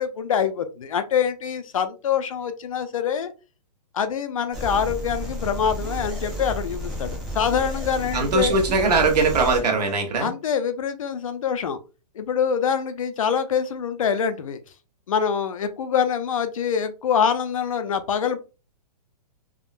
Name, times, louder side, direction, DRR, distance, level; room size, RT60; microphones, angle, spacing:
voice 1, 0.0-3.3 3.9-8.5 10.2-11.8 12.2-14.6 15.1-18.4, left 7 dB, 55° left, 10 dB, 0.4 m, -25 dB
sound 1, 4.5-9.6, equal, ahead, 0.6 m, -32 dB
voice 2, 8.1-10.3, right 3 dB, 70° right, 3 dB, 1.1 m, -21 dB
3.6 x 2.1 x 2.4 m, 0.32 s
hypercardioid pair, 180°, 21 cm